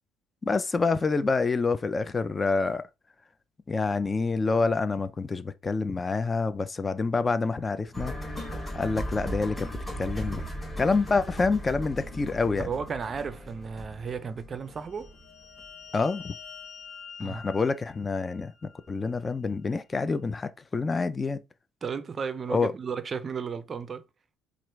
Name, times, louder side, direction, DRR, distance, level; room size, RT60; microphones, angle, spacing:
voice 1, 0.4-2.8 3.7-8.1 8.5-9.7 10.0-10.4 10.8-12.7 15.9-16.3 17.2-18.5 18.9-21.4 22.5-22.7, left 4 dB, 25° left, 0.4 m, -27 dB
sound 1, 7.9-15.9 16.2-16.3, equal, 5° left, 2.6 m, -37 dB
voice 2, 12.6-15.1 17.2-17.5 21.8-24.0, right 6 dB, 35° right, 0.5 m, -34 dB
sound 2, 14.7-19.2, left 6 dB, 50° left, 1.1 m, -47 dB
4.4 x 2.4 x 3.1 m
cardioid pair, 110°, 0 cm